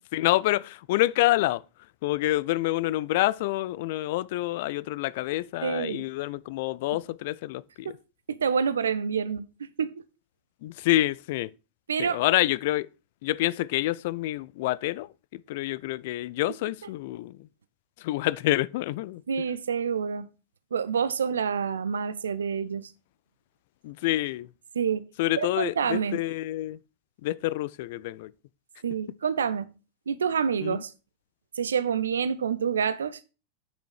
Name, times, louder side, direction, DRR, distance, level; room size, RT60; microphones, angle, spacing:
voice 1, 0.1-1.6 2.0-7.9 10.6-11.5 12.0-12.9 13.2-17.5 18.0-19.2 23.8-24.5 25.2-26.8 27.2-28.3 30.6-30.8, left 17 dB, 50° left, 0.3 m, -27 dB
voice 2, 5.6-6.1 7.8-7.9 8.3-10.0 11.9-12.2 19.3-20.3 20.7-22.9 24.7-25.0 25.4-26.2 28.8-29.7 30.1-30.9 31.6-33.2, right 6 dB, 70° right, 0.6 m, -27 dB
8.2 x 6.3 x 4.7 m
figure-of-eight pair, 90°, 0 cm